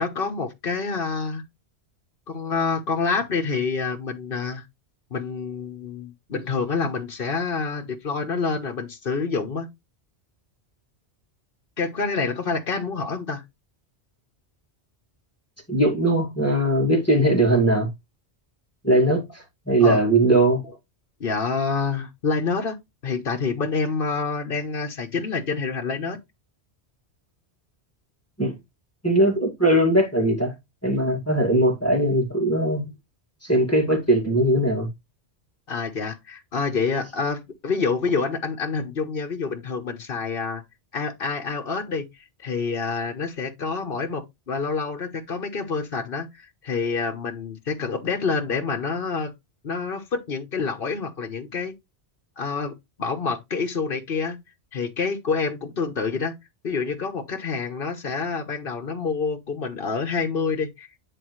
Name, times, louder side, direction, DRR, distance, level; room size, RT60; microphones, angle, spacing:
voice 1, 0.0-1.4 2.3-4.6 5.1-9.7 11.8-13.4 19.8-20.0 21.2-22.8 23.0-26.2 35.7-40.6 40.9-42.1 42.4-49.3 49.6-51.7 52.4-54.4 54.7-56.3 56.6-60.9, left 4 dB, 55° left, 1.3 m, -27 dB
voice 2, 15.7-17.9 18.8-20.6 28.4-28.5 29.0-30.5 30.8-32.9 33.4-34.9, right 1 dB, 15° left, 2.2 m, -20 dB
9.9 x 4.3 x 3.1 m
omnidirectional pair, 1.1 m